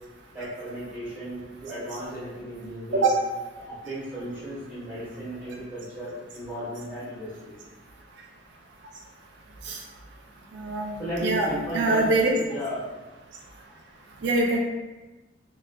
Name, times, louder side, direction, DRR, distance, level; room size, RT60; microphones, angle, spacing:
voice 1, 0.3-3.1 3.6-7.6 11.0-12.1 12.5-12.8, equal, 10° right, -13 dB, 1.5 m, -35 dB
voice 2, 10.5-11.5 11.7-12.3 14.2-14.6, right 3 dB, 65° right, -1 dB, 0.4 m, -23 dB
3.3 x 3.0 x 2.3 m, 1.2 s
head